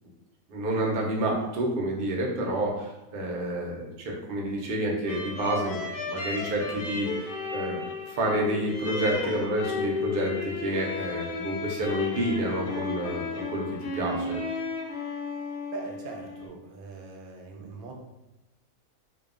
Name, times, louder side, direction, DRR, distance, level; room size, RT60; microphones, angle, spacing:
voice 1, 0.5-13.7 13.9-14.4, right 1 dB, 60° right, -1 dB, 0.6 m, -29 dB
sound 1, 5.1-16.5, left 4 dB, 85° left, 1.0 m, -34 dB
voice 2, 15.7-17.9, right 4 dB, 90° right, 0 dB, 1.0 m, -41 dB
2.7 x 2.2 x 2.4 m, 0.98 s
omnidirectional pair, 1.5 m